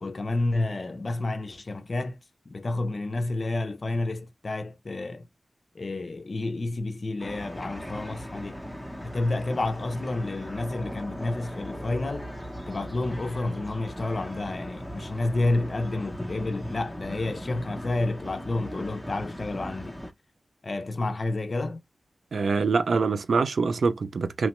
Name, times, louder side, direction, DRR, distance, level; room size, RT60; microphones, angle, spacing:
voice 1, 0.0-2.2 2.5-5.3 5.7-8.6 9.0-12.3 12.7-20.0 20.6-21.8, left 2 dB, 50° left, 0.5 m, -30 dB
sound 1, 7.2-20.1, equal, ahead, 0.7 m, -39 dB
voice 2, 22.3-24.5, right 4 dB, 90° right, 0.3 m, -24 dB
3.0 x 2.1 x 2.9 m
wide cardioid pair, 85°, 0 cm